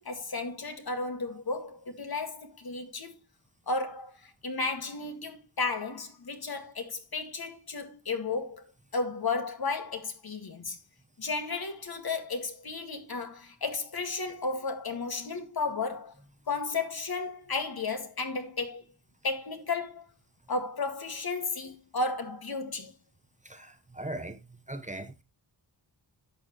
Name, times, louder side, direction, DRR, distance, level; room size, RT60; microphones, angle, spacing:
voice 1, 0.0-3.2 3.7-8.6 8.9-10.8 11.2-16.1 16.5-18.8 19.2-20.1 20.5-23.0, left 3 dB, 55° left, 1.9 m, -33 dB
voice 2, 23.4-24.4 24.7-25.2, right 1 dB, 15° right, 1.0 m, -39 dB
11.0 x 7.1 x 3.0 m
wide cardioid pair, 80°, 45 cm